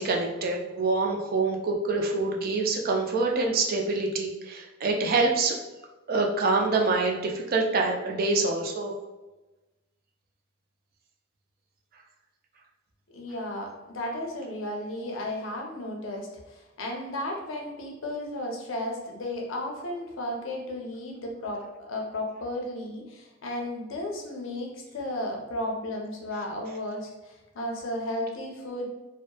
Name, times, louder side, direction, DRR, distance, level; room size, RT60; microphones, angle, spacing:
voice 1, 0.0-5.6 6.1-8.9, right 3 dB, 50° right, 1 dB, 0.4 m, -26 dB
voice 2, 13.1-28.9, left 1 dB, 75° left, 0 dB, 0.6 m, -34 dB
2.8 x 2.0 x 2.2 m, 1.1 s
head